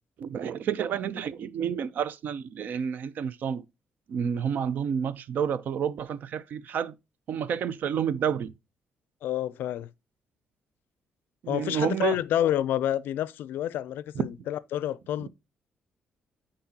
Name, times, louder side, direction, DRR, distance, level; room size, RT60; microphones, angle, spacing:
voice 1, 0.2-3.6 4.1-6.9 7.3-8.5 11.4-12.2 14.2-14.3 15.2-15.3, right 8 dB, 65° right, 0.5 m, -29 dB
voice 2, 9.2-9.9 11.5-15.3, left 11 dB, 80° left, 0.4 m, -29 dB
9.5 x 3.9 x 2.7 m
cardioid pair, 110°, 3 cm